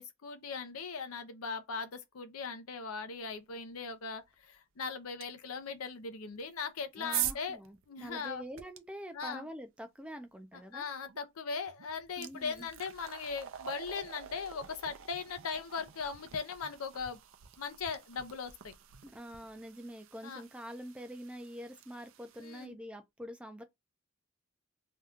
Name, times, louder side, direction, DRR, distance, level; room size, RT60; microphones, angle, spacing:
voice 1, 0.0-7.6 7.9-8.4 9.1-9.5 10.7-17.2 17.6-18.7 20.2-20.4 22.4-22.8, left 5 dB, 80° left, 0.6 m, -39 dB
sound 1, 5.2-5.3 6.4-8.8 11.1-11.2 11.7-22.7, right 11 dB, 65° right, 0.5 m, -44 dB
voice 2, 6.9-10.9 12.2-12.7 19.0-23.6, equal, 5° right, 0.4 m, -46 dB
2.8 x 2.3 x 3.5 m
head